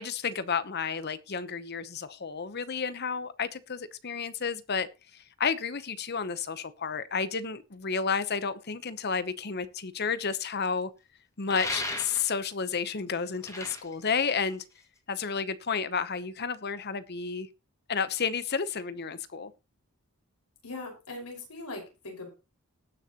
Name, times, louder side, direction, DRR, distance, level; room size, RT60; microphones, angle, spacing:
voice 1, 0.0-4.9 5.4-10.9 11.4-14.6 15.1-17.5 17.9-19.5, left 5 dB, 45° left, 0.9 m, -31 dB
sound 1, 11.5-12.5 13.3-15.0, left 2 dB, 15° left, 2.0 m, -36 dB
voice 2, 20.6-22.3, left 2 dB, 90° left, 5.3 m, -40 dB
19.5 x 6.6 x 3.0 m
head